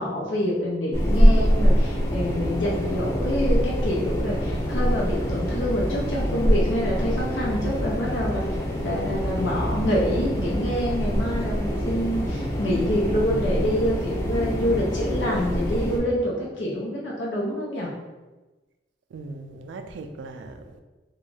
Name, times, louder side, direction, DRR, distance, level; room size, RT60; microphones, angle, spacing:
voice 1, 0.0-17.9, equal, 90° left, 0.6 m, -26 dB
sound 1, 0.9-16.0, equal, 15° left, 0.4 m, -24 dB
voice 2, 19.1-20.8, right 3 dB, 75° right, 0.3 m, -39 dB
2.5 x 2.2 x 3.2 m
head